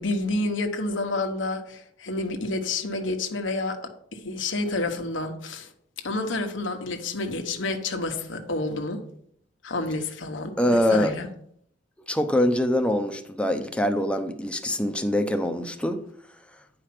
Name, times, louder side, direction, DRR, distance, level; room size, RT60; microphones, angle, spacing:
voice 1, 0.0-3.8 4.1-5.7 6.0-9.0 9.6-11.3, left 2 dB, 90° left, 1.2 m, -29 dB
voice 2, 10.6-11.1 12.1-16.0, left 1 dB, 5° left, 0.7 m, -24 dB
9.7 x 4.9 x 6.0 m
head